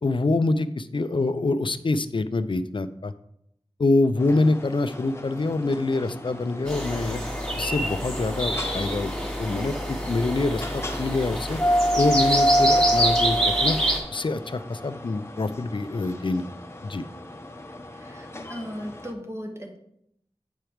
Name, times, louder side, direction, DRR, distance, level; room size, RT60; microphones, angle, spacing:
voice 1, 0.0-3.1 3.8-7.2 7.6-9.1 9.4-11.6 12.0-13.8 14.1-16.4 16.8-17.0, left 2 dB, 55° left, 13 dB, 0.5 m, -25 dB
sound 1, 4.2-19.1, equal, 25° left, 0.8 m, -29 dB
sound 2, 6.7-14.0, equal, 5° left, 2.4 m, -27 dB
voice 2, 17.9-19.8, equal, 25° right, 3 dB, 1.3 m, -37 dB
8.1 x 4.5 x 5.0 m, 0.74 s
wide cardioid pair, 65°, 10 cm